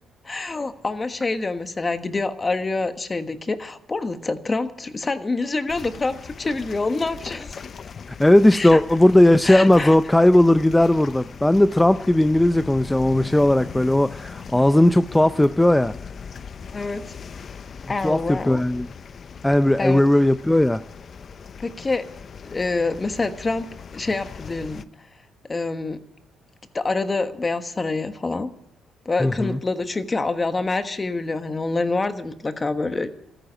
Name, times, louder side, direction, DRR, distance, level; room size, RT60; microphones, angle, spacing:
voice 1, 0.2-7.6 8.5-8.8 9.4-10.0 16.7-17.0 17.9-18.6 19.8-20.0 21.6-22.0 22.5-25.1 25.5-26.0 26.7-28.5 29.0-33.1, left 3 dB, 25° left, 1.3 m, -26 dB
Sea Gurgles, 5.7-24.8, left 6 dB, 50° left, 0.6 m, -40 dB
voice 2, 8.2-15.9 18.0-18.9 19.4-20.8 29.2-29.6, left 1 dB, 10° left, 0.5 m, -17 dB
14.0 x 9.2 x 9.8 m
cardioid pair, 90°, 0 cm